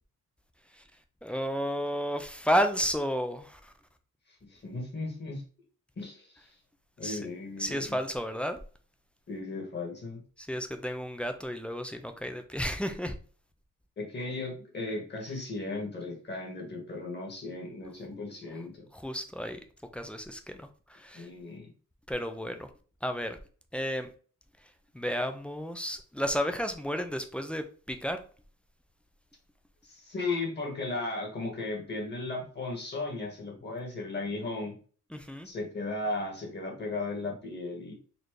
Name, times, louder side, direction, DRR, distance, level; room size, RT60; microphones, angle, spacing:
voice 1, 1.2-3.7 7.0-7.2 7.6-8.6 10.4-13.2 18.9-19.6 19.9-21.3 22.1-22.7 23.0-23.4 23.7-24.1 24.9-28.2 35.1-35.5, equal, 5° left, 6 dB, 0.3 m, -32 dB
voice 2, 4.5-5.4 6.0-6.5 7.0-8.0 9.3-10.2 14.0-18.9 21.1-21.7 29.8-34.8 35.4-37.9, left 2 dB, 35° left, -1 dB, 1.5 m, -36 dB
4.1 x 2.8 x 3.1 m, 0.40 s
wide cardioid pair, 165°, 32 cm